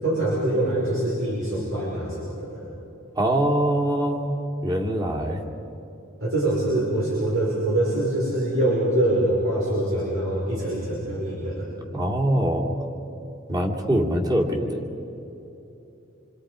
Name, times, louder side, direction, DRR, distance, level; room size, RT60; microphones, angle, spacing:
voice 1, 0.0-2.6 6.2-11.7, right 1 dB, 85° right, -6 dB, 5.2 m, -24 dB
voice 2, 3.2-4.3 4.6-5.4 11.7-12.7 13.5-14.8, right 1 dB, 20° right, -1 dB, 2.4 m, -23 dB
27.5 x 25.5 x 5.0 m, 3.0 s
head